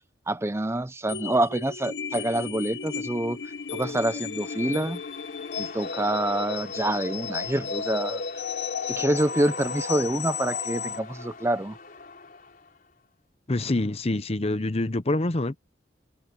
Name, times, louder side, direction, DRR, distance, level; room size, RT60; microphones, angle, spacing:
voice 1, 0.3-5.0 5.6-8.4 8.9-11.8, right 1 dB, 15° right, 0.7 m, -27 dB
sound 1, 1.1-11.0, left 5 dB, 70° left, 1.0 m, -33 dB
sound 2, 3.1-13.0, left 4 dB, 50° left, 4.2 m, -44 dB
voice 2, 13.5-15.6, left 2 dB, 35° left, 0.9 m, -26 dB
head